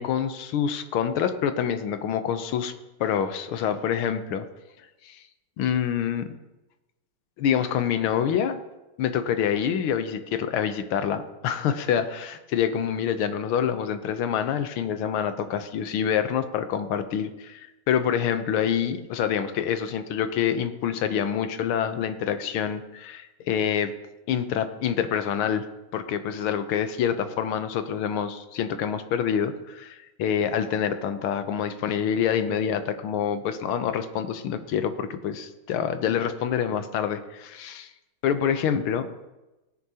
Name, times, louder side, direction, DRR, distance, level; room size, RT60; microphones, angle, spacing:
voice 1, 0.0-2.7 3.0-4.4 5.0-5.2 5.6-6.3 7.4-8.6 9.0-23.9 24.3-25.6 25.9-37.9 38.2-39.1, left 8 dB, 90° left, 10 dB, 1.7 m, -26 dB
17.5 x 10.0 x 2.8 m, 1.0 s
omnidirectional pair, 2.3 m